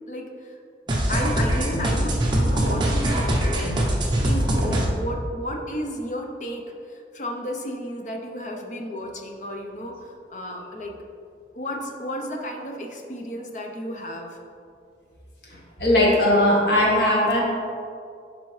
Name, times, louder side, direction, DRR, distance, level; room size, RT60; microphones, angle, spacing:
voice 1, 0.1-0.6 1.1-3.7 4.2-11.0 11.5-14.4, equal, 40° left, 2 dB, 0.7 m, -33 dB
Electonic Music, 0.9-4.8, right 1 dB, 25° right, 0.9 m, -22 dB
voice 2, 15.8-17.4, left 1 dB, 65° left, -3 dB, 1.6 m, -18 dB
11.5 x 4.2 x 3.2 m, 2.4 s
head